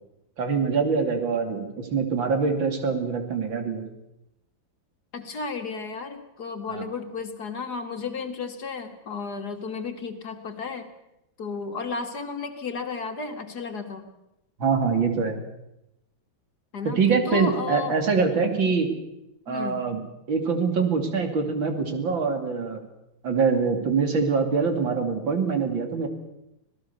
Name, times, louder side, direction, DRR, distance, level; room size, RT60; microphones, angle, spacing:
voice 1, 0.4-3.8 6.7-6.9 14.6-15.4 17.0-18.9 19.5-20.0 20.3-22.8 23.2-26.1, right 5 dB, 75° right, 6 dB, 3.4 m, -24 dB
voice 2, 5.1-10.9 11.4-14.1 16.7-17.0 17.3-18.0 18.6-18.8 19.5-19.9, left 5 dB, 55° left, 6 dB, 2.4 m, -33 dB
26.0 x 17.5 x 6.9 m, 0.88 s
omnidirectional pair, 2.1 m